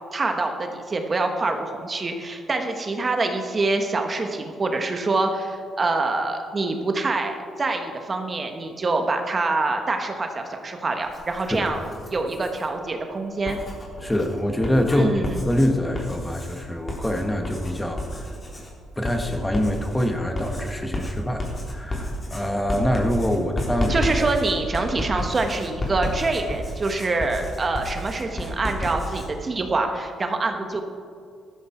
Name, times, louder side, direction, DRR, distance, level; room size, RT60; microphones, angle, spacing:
voice 1, 0.1-11.8 12.1-13.6 15.0-15.4 23.9-30.8, right 3 dB, 35° right, 4 dB, 1.5 m, -25 dB
Writing, 11.0-12.7 13.3-29.3, equal, 30° left, 3.7 m, -32 dB
voice 2, 14.0-18.3 18.9-24.0, left 1 dB, 10° left, 4 dB, 1.6 m, -25 dB
15.0 x 13.0 x 4.6 m, 2.2 s
cardioid pair, 90°, 0 cm